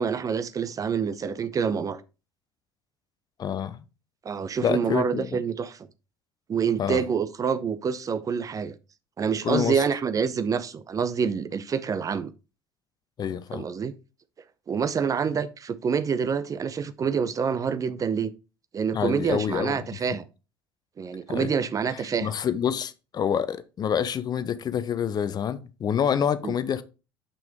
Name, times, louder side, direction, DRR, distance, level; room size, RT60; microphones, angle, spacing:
voice 1, 0.0-2.0 4.2-5.9 6.5-8.7 9.2-12.3 13.5-13.9 14.7-18.3 18.7-20.3 21.0-22.3 26.4-26.5, right 6 dB, 30° right, 0.7 m, -27 dB
voice 2, 3.4-3.8 4.6-5.4 6.8-7.0 9.4-9.8 13.2-13.7 18.9-19.8 21.3-21.5 22.2-26.8, left 8 dB, 35° left, 0.8 m, -27 dB
7.0 x 5.9 x 3.6 m
figure-of-eight pair, 60°, 11 cm